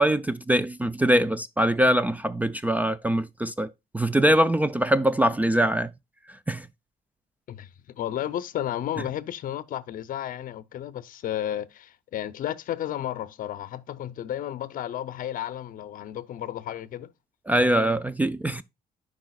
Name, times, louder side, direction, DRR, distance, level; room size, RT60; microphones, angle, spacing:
voice 1, 0.0-3.7 3.9-5.9 6.5-6.7 17.5-18.6, right 1 dB, 10° right, 0.3 m, -23 dB
voice 2, 7.5-17.1, left 11 dB, 55° left, 0.6 m, -33 dB
11.5 x 5.0 x 2.3 m
cardioid pair, 110°, 17 cm